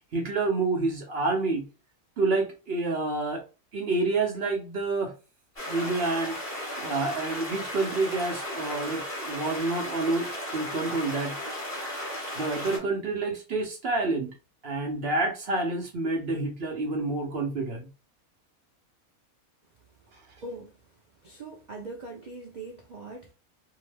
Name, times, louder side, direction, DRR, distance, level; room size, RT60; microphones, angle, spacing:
voice 1, 0.1-1.6 2.2-3.4 3.7-5.1 5.7-6.4 6.8-11.3 12.3-14.3 14.6-17.9, right 3 dB, 55° right, 0.8 m, -28 dB
sound 1, 5.6-12.8, left 1 dB, 25° left, 1.3 m, -35 dB
voice 2, 20.4-20.8 21.2-23.3, right 2 dB, 70° right, 0.4 m, -41 dB
2.8 x 2.1 x 3.2 m
omnidirectional pair, 1.5 m